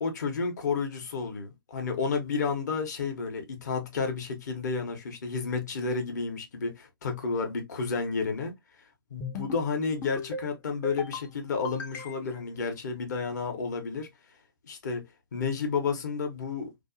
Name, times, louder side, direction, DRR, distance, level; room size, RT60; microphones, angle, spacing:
voice 1, 0.0-8.5 9.1-14.1 14.6-15.0 15.3-16.7, left 4 dB, 50° left, 0.8 m, -31 dB
sound 1, 9.2-9.7 10.0-10.5 10.8-11.3 11.6-12.4, left 3 dB, 10° left, 0.3 m, -37 dB
2.6 x 2.1 x 2.5 m
figure-of-eight pair, 135°, 12 cm